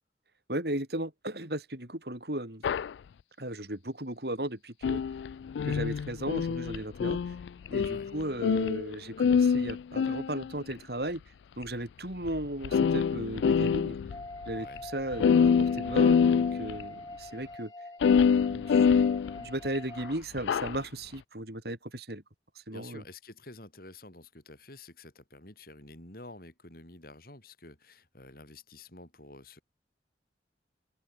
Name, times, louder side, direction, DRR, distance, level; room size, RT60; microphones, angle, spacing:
voice 1, 0.5-2.6 3.4-5.0 5.6-7.3 7.7-11.2 11.6-14.0 14.5-17.7 18.5-19.1 19.4-22.2 22.6-23.0, right 1 dB, 60° right, 5.5 m, -36 dB
sound 1, 2.6-2.9 4.8-8.9 9.2-10.7 11.6-11.7 12.3-12.4 12.6-14.2 14.5-14.6 14.8-14.9 15.1-16.8 18.0-19.8 20.4-20.8, left 6 dB, 85° left, 0.3 m, -25 dB
voice 2, 7.8-8.1 14.5-14.8 22.7-29.6, left 2 dB, 55° left, 5.4 m, -49 dB
sound 2, 14.1-20.2, left 2 dB, 20° left, 2.1 m, -43 dB
head